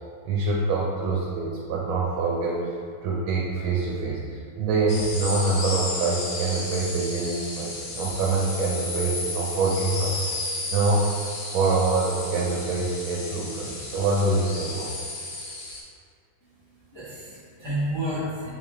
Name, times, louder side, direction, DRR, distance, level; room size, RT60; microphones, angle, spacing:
voice 1, 0.3-2.8 3.0-10.2 10.7-11.1 11.5-14.9, right 3 dB, 90° right, -3 dB, 1.4 m, -25 dB
sound 1, 4.9-15.8, left 2 dB, 65° left, 1.3 m, -33 dB
voice 2, 16.4-18.5, right 1 dB, 30° left, -11 dB, 0.5 m, -31 dB
4.3 x 3.3 x 3.5 m, 2.3 s
omnidirectional pair, 2.2 m